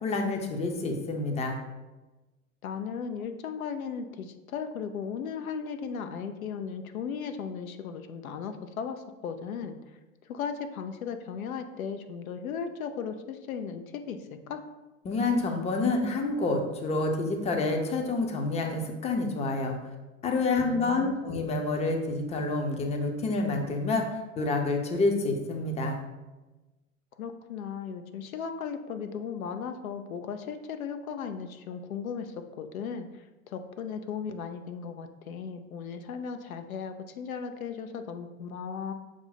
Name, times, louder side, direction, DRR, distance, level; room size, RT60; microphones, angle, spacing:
voice 1, 0.0-1.6 15.0-19.8 20.2-24.0 24.4-26.0, left 3 dB, 15° left, 4 dB, 0.5 m, -28 dB
voice 2, 2.6-9.8 10.3-14.6 20.6-21.3 27.2-38.9, left 6 dB, 90° left, 8 dB, 0.5 m, -36 dB
6.0 x 2.0 x 4.0 m, 1.1 s
hypercardioid pair, 95°, 41 cm